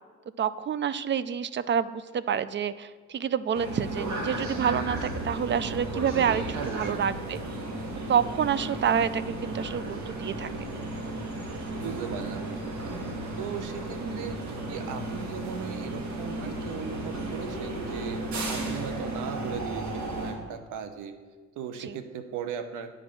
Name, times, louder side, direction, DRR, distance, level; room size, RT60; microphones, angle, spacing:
voice 1, 0.4-7.4 8.1-10.5 14.0-14.2 18.6-18.8 21.9-22.0, right 8 dB, 40° right, 16 dB, 0.4 m, -28 dB
sound 1, 3.5-20.3, right 2 dB, 65° right, 1.7 m, -34 dB
voice 2, 6.5-7.0 11.8-12.7 13.4-14.4 14.7-18.2 18.5-21.1 21.6-23.0, right 7 dB, 90° right, 8 dB, 0.8 m, -37 dB
8.8 x 4.9 x 7.5 m, 1.5 s
cardioid pair, 90°, 30 cm